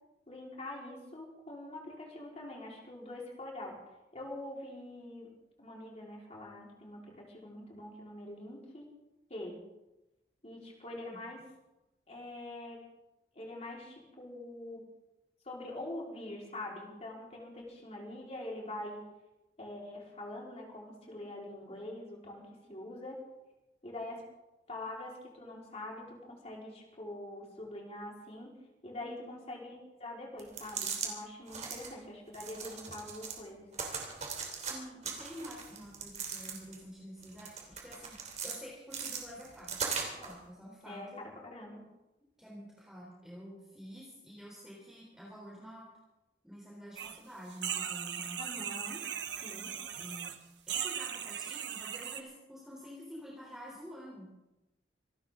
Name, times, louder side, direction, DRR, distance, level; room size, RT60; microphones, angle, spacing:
voice 1, 0.3-3.8 4.1-5.3 5.6-8.9 9.3-9.6 10.4-11.5 12.1-12.8 13.3-14.8 15.4-19.0 19.6-23.2 23.8-24.2 24.7-28.5 28.8-33.7 40.8-41.8 48.4-49.0 49.4-49.7, left 1 dB, 35° left, -2 dB, 4.3 m, -44 dB
voice 2, 29.0-29.4 31.7-32.0 34.6-39.8 40.2-41.2 42.4-45.9 46.4-48.4 49.9-50.4 50.7-54.3, equal, 5° right, -5 dB, 3.5 m, -49 dB
sound 1, 30.4-31.1 31.5-31.9 32.3-33.4 33.7-34.7 35.0-36.8 37.2-38.6 38.9-40.3, right 6 dB, 40° right, 3.2 m, -39 dB
sound 2, 47.0-47.2 47.5-50.4 50.7-52.2, right 9 dB, 80° right, 1.2 m, -38 dB
26.5 x 12.5 x 3.8 m, 0.97 s
head